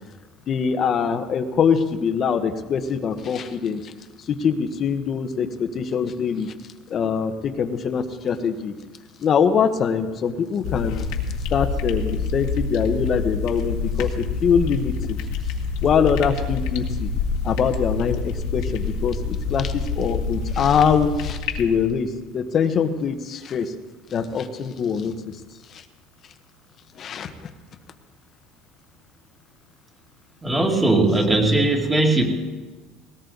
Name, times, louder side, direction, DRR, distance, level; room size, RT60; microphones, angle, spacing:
voice 1, 0.5-3.9 4.2-6.5 6.9-8.7 9.2-11.1 11.5-15.2 15.8-17.1 17.4-23.7 24.1-25.4 25.7-25.8 26.9-27.5, left 6 dB, 35° left, 8 dB, 1.3 m, -23 dB
sound 1, 10.6-21.9, left 5 dB, 75° left, 2.0 m, -27 dB
voice 2, 30.4-32.2, right 2 dB, 15° right, 1 dB, 2.6 m, -19 dB
19.5 x 18.5 x 4.1 m, 1.2 s
cardioid pair, 140°, 0 cm